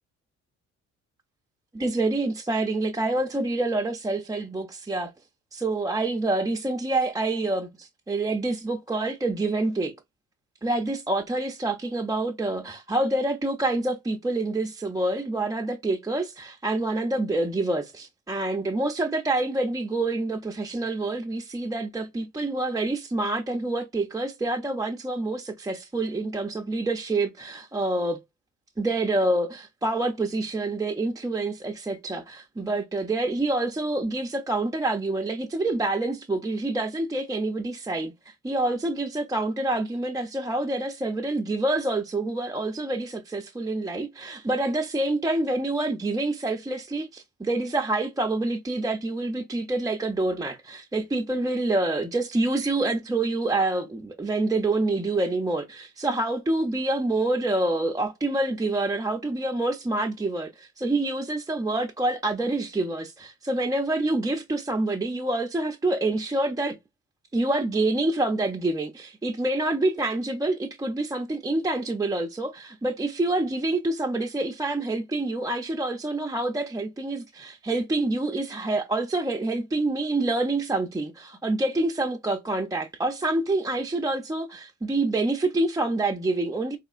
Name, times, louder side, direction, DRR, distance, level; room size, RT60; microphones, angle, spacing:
voice 1, 1.7-5.1 5.5-9.9 10.6-28.2 28.8-66.8 67.3-86.8, right 2 dB, 10° right, 0.5 m, -27 dB
3.4 x 3.0 x 2.4 m
cardioid pair, 90°, 30 cm